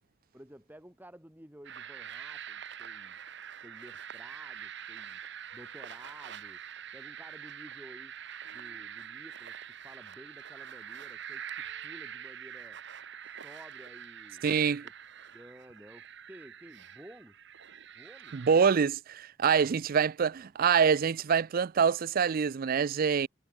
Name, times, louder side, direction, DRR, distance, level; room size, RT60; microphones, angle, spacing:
voice 1, 0.3-3.2 3.6-5.2 5.5-6.6 6.9-8.1 8.5-12.8 13.2-14.4 14.8-14.9 15.3-17.4 17.9-18.4 20.3-20.5, right 1 dB, 10° right, 4.5 m, -53 dB
sound 1, 1.6-18.7, right 8 dB, 65° right, 1.3 m, -45 dB
sound 2, 5.5-7.9 8.4-10.0 11.6-12.3, left 2 dB, 90° left, 5.2 m, -67 dB
voice 2, 14.4-14.8 18.3-23.3, right 6 dB, 50° right, 0.4 m, -25 dB
head